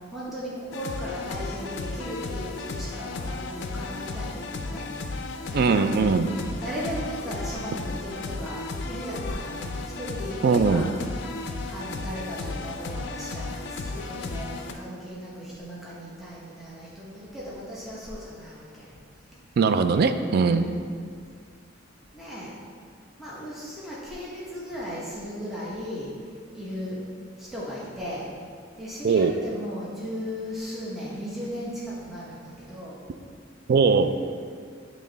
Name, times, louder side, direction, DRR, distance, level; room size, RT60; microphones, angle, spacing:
voice 1, 0.1-5.9 6.6-10.9 11.6-18.9 20.4-20.8 22.1-22.6 23.2-26.1 26.5-27.0 27.4-28.3 28.7-33.0, equal, ahead, -8 dB, 0.9 m, -36 dB
sound 1, 0.7-14.7, left 3 dB, 60° left, 0.4 m, -34 dB
voice 2, 5.5-6.3 10.4-10.9 19.6-20.6 29.0-29.3 33.7-34.1, right 5 dB, 55° right, 10 dB, 0.3 m, -20 dB
8.6 x 3.1 x 3.9 m, 2.2 s
head